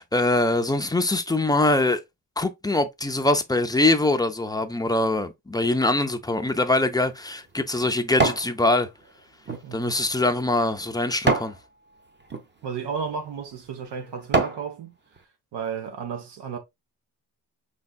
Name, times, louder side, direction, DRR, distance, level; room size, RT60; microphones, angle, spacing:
voice 1, 0.0-2.0 2.4-8.9 9.7-11.5, left 2 dB, 10° left, 0.3 m, -23 dB
sound 1, 6.7-8.5 9.0-11.6 12.2-12.5 13.1-13.3 13.8-14.7 15.2-15.3, right 3 dB, 25° right, 0.6 m, -28 dB
voice 2, 9.6-10.0 12.6-15.0 15.5-16.6, right 6 dB, 75° right, 1.1 m, -33 dB
5.5 x 3.4 x 2.3 m
wide cardioid pair, 140°, 42 cm